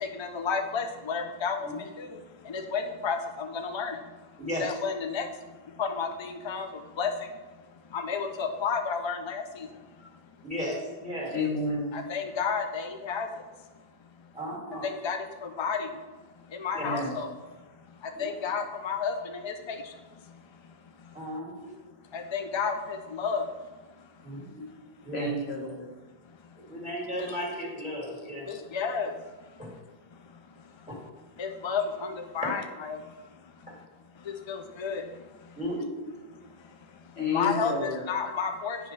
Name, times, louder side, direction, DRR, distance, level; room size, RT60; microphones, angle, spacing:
voice 1, 0.2-1.7 2.0-2.1 2.5-3.2 3.5-3.9 4.6-5.2 5.8-6.7 7.0-7.1 7.9-9.4 11.9-13.3 14.8-15.2 15.6-15.8 16.6-17.3 18.2-19.1 19.4-19.8 22.1-23.4 28.5-29.1 31.4-33.0 34.5-35.0 37.3-38.8, left 6 dB, 50° left, 5 dB, 0.3 m, -31 dB
voice 2, 10.4-11.4 14.3-14.9 16.7-16.9 18.1-18.3 21.1-21.7 24.2-24.6 25.0-25.3 26.7-28.5 29.6-29.7 30.9-31.0 32.4-32.5 35.6-36.0, equal, 5° right, -5 dB, 2.2 m, -35 dB
voice 3, 11.3-11.9 16.8-17.1 25.1-25.9 37.2-38.0, left 2 dB, 85° left, -3 dB, 1.9 m, -30 dB
9.2 x 3.1 x 5.4 m, 1.3 s
omnidirectional pair, 1.0 m